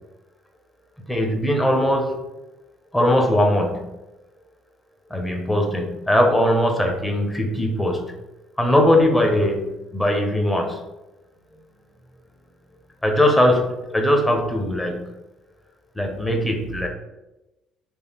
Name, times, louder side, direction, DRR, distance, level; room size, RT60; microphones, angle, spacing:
voice 1, 1.1-2.2 2.9-3.9 5.1-8.0 8.6-10.8 13.0-15.0 16.0-16.9, left 1 dB, 10° left, 2 dB, 0.7 m, -20 dB
3.2 x 2.3 x 2.9 m, 1.0 s
figure-of-eight pair, 50°, 0 cm